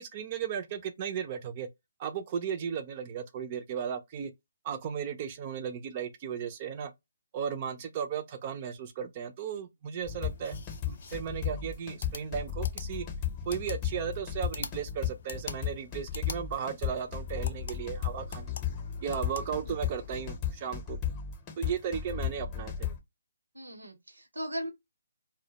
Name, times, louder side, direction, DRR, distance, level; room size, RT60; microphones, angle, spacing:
voice 1, 0.0-1.7 2.0-4.3 4.6-6.9 7.3-10.6 10.8-13.1 13.5-18.5 19.0-21.0 21.6-22.9, right 7 dB, 35° right, 0.4 m, -35 dB
sound 1, 10.0-20.4, left 5 dB, 55° left, 0.4 m, -47 dB
sound 2, 10.1-23.0, left 9 dB, 20° left, 0.7 m, -35 dB
voice 2, 23.5-24.7, equal, 90° right, 0.8 m, -38 dB
2.1 x 2.1 x 2.8 m
hypercardioid pair, 150°, 0 cm